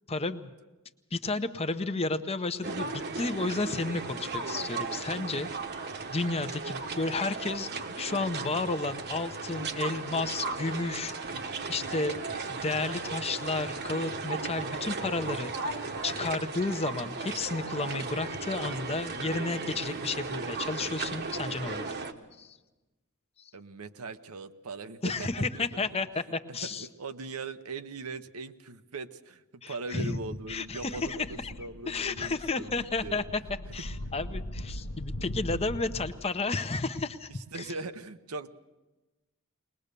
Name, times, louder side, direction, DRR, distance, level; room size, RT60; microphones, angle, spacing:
voice 1, 0.1-0.5 1.1-5.5 6.1-11.3 11.7-12.2 12.5-21.9 22.4-22.6 23.4-23.5 25.0-26.9 29.6-30.2 30.5-31.5 31.9-37.7, left 3 dB, 25° left, 10 dB, 0.8 m, -32 dB
sound 1, 2.6-22.1, right 4 dB, 50° right, 1.2 m, -36 dB
voice 2, 23.5-25.9 26.5-32.7 33.0-33.3 37.5-38.5, right 3 dB, 75° right, 10 dB, 0.9 m, -40 dB
sound 2, 30.3-36.1, left 1 dB, 75° left, 0.9 m, -40 dB
21.0 x 20.5 x 6.8 m, 1.1 s
head